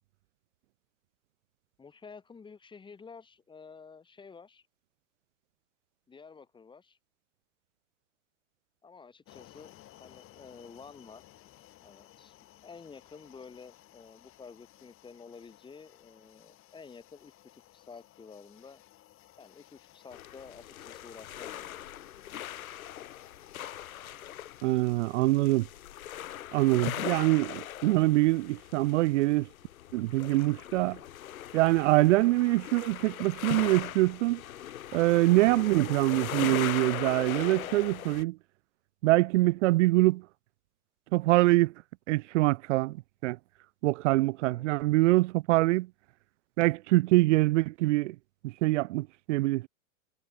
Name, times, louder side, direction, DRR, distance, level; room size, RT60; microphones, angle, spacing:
voice 1, 1.8-4.7 6.1-7.0 8.8-11.2 11.8-12.4 12.6-18.8 19.4-21.8 44.4-44.7, left 5 dB, 10° left, 2.3 m, -51 dB
sound 1, 9.2-27.0, left 14 dB, 30° left, 4.6 m, -58 dB
sound 2, 20.1-38.2, left 12 dB, 85° left, 2.1 m, -40 dB
voice 2, 24.6-25.7 26.5-29.5 29.9-31.0 31.5-34.4 34.9-38.4 39.0-40.2 41.1-41.7 42.1-43.0 43.2-43.4 43.8-45.9 46.6-48.2 48.4-49.7, right 19 dB, 60° right, 0.6 m, -24 dB
supercardioid pair, 140°, 41 cm